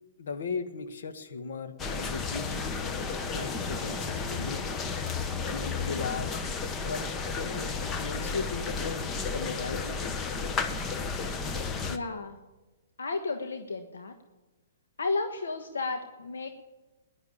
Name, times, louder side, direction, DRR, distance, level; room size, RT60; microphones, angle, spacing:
voice 1, 0.2-2.8 3.3-4.7 5.5-6.4 6.7-7.0 7.3-9.0 9.3-10.2, left 5 dB, 70° left, 8 dB, 1.7 m, -37 dB
sound 1, 1.8-12.0, left 4 dB, 20° left, 1.0 m, -33 dB
voice 2, 11.9-12.4 13.0-14.1 15.0-16.5, left 3 dB, 85° left, 6 dB, 1.3 m, -33 dB
15.0 x 10.5 x 8.6 m, 1.1 s
hypercardioid pair, 135°, 0 cm